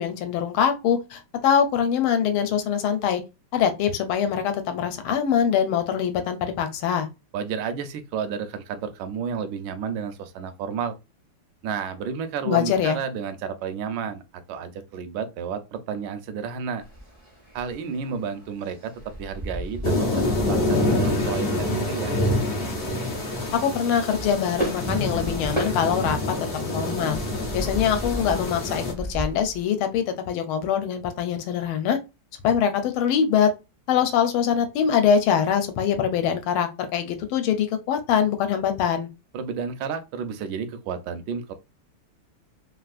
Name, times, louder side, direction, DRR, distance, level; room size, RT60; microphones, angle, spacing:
voice 1, 0.0-3.2 3.5-7.1 12.5-13.0 23.5-26.4 26.7-27.2 27.5-32.0 32.4-33.5 33.9-39.1, left 8 dB, 80° left, 1.5 m, -23 dB
voice 2, 7.3-11.0 11.6-14.2 14.5-16.8 17.5-18.9 19.2-22.1 39.3-41.5, right 6 dB, 70° right, 1.1 m, -31 dB
sound 1, 16.8-29.6, right 1 dB, 50° right, 0.3 m, -36 dB
sound 2, 19.8-28.9, left 1 dB, 65° left, 0.5 m, -26 dB
3.6 x 2.5 x 2.4 m
omnidirectional pair, 2.4 m